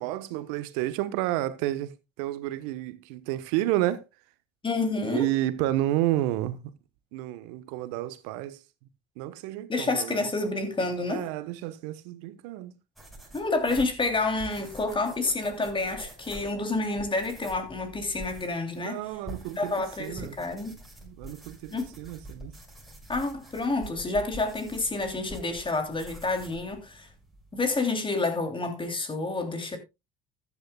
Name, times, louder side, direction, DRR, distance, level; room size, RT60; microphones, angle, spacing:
voice 1, 0.0-4.0 5.0-6.7 7.1-8.6 9.2-10.2 11.1-12.7 18.7-20.4 21.0-22.5, right 14 dB, 75° right, 1.2 m, -31 dB
voice 2, 4.6-5.3 9.7-11.2 13.3-19.0 19.6-20.8 21.7-22.0 23.1-27.1 27.5-29.8, left 3 dB, 25° left, 3.1 m, -29 dB
sound 1, 13.0-27.8, right 1 dB, ahead, 6.2 m, -46 dB
14.5 x 10.5 x 2.3 m
hypercardioid pair, 65°, 21 cm